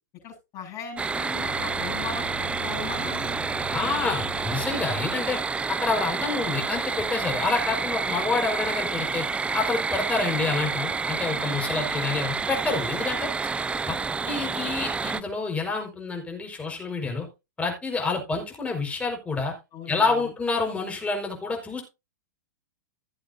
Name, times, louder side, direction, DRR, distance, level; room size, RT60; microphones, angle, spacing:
voice 1, 0.2-3.4 3.8-4.0 11.5-11.8 19.7-20.3, left 6 dB, 35° left, -1 dB, 7.2 m, -39 dB
sound 1, 1.0-15.2, right 4 dB, 10° right, 0.5 m, -29 dB
Bowed string instrument, 1.3-5.3, left 2 dB, 30° right, 5.0 m, -41 dB
voice 2, 3.7-5.4 5.7-9.2 9.5-13.3 13.8-14.0 14.2-17.3 17.6-19.5 19.9-21.8, left 4 dB, 15° left, 3 dB, 5.0 m, -28 dB
16.5 x 7.9 x 2.7 m, 0.26 s
hypercardioid pair, 115°, 10 cm